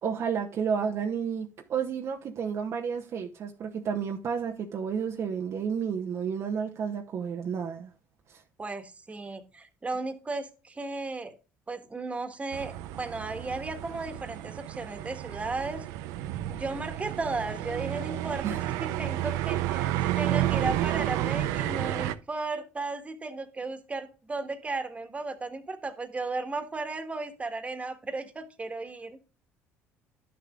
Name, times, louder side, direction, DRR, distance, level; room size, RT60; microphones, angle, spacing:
voice 1, 0.0-7.9 8.3-8.4 18.4-18.6, right 7 dB, 55° right, 0.9 m, -31 dB
voice 2, 8.6-11.4 11.7-15.8 16.5-29.2, right 3 dB, 25° right, 1.6 m, -35 dB
sound 1, 12.5-22.1, right 13 dB, 80° right, 0.6 m, -31 dB
11.5 x 6.9 x 2.4 m
supercardioid pair, 85°, 6 cm